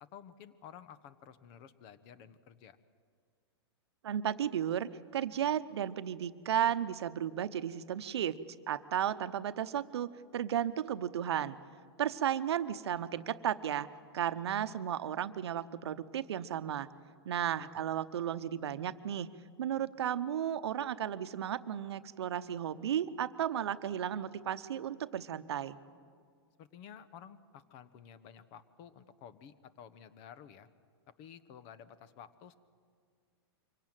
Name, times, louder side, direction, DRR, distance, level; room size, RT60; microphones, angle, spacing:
voice 1, 0.0-2.8 17.4-17.8 26.6-30.7 31.2-32.5, left 8 dB, 45° left, 14 dB, 1.1 m, -53 dB
voice 2, 4.0-8.4 8.7-11.6 12.0-13.9 14.1-16.9 17.2-19.3 19.6-25.8, right 10 dB, 80° right, 13 dB, 0.9 m, -34 dB
24.0 x 17.5 x 9.0 m, 2.1 s
hypercardioid pair, 130°, 14 cm